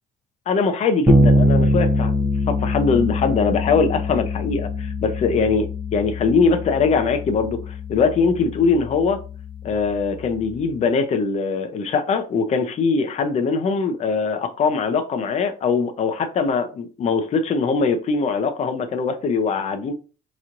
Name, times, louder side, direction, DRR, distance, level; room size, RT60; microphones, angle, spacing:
voice 1, 0.5-9.2 9.6-19.9, left 5 dB, 40° left, 7 dB, 0.5 m, -21 dB
Bass guitar, 1.1-10.7, left 1 dB, 10° right, 0.6 m, -23 dB
4.0 x 3.0 x 2.5 m, 0.35 s
cardioid pair, 110°, 17 cm